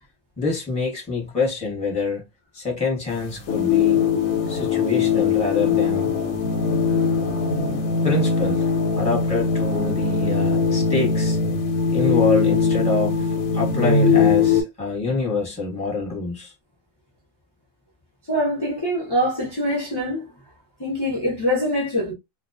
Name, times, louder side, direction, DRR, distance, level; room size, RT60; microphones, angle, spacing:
voice 1, 0.4-2.2 2.5-4.1 4.5-6.1 8.0-11.4 11.9-16.5, left 3 dB, 5° left, 0.8 m, -26 dB
sound 1, 3.1-14.6, left 5 dB, 85° left, 1.0 m, -21 dB
voice 2, 18.3-20.3 20.8-22.1, equal, 30° left, 0.4 m, -24 dB
2.3 x 2.2 x 2.5 m
omnidirectional pair, 1.4 m